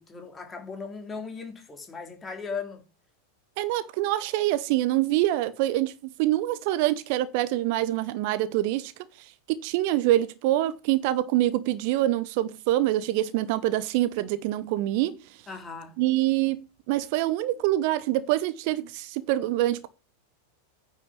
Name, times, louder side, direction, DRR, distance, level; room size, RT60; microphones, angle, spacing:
voice 1, 0.0-2.8 15.5-15.9, left 5 dB, 15° left, 3.2 m, -37 dB
voice 2, 3.6-8.9 9.2-15.2 16.0-19.9, right 15 dB, 45° right, 0.8 m, -25 dB
9.6 x 6.2 x 8.5 m
figure-of-eight pair, 90°, 0 cm